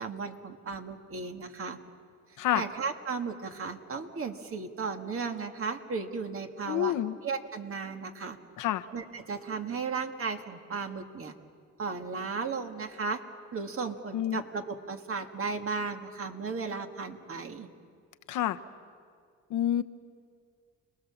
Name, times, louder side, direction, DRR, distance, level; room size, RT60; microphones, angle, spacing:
voice 1, 0.0-1.8 2.5-6.9 7.2-8.4 8.9-11.3 11.8-13.2 13.5-17.7, right 5 dB, 45° right, 5 dB, 2.0 m, -35 dB
voice 2, 6.7-7.1 8.6-8.8 14.1-14.4 18.3-18.6 19.5-19.8, left 12 dB, 85° left, 11 dB, 1.0 m, -28 dB
30.0 x 20.0 x 7.2 m, 2.1 s
cardioid pair, 90°, 30 cm